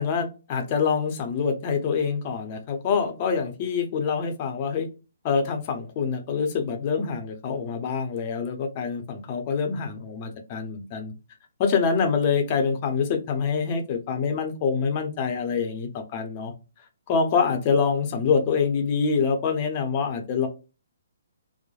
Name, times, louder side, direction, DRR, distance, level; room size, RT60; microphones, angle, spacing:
voice 1, 0.0-4.9 5.2-11.1 11.6-16.5 17.1-20.5, left 5 dB, 35° left, 0.7 m, -25 dB
3.0 x 2.1 x 2.4 m
figure-of-eight pair, 140°, 0 cm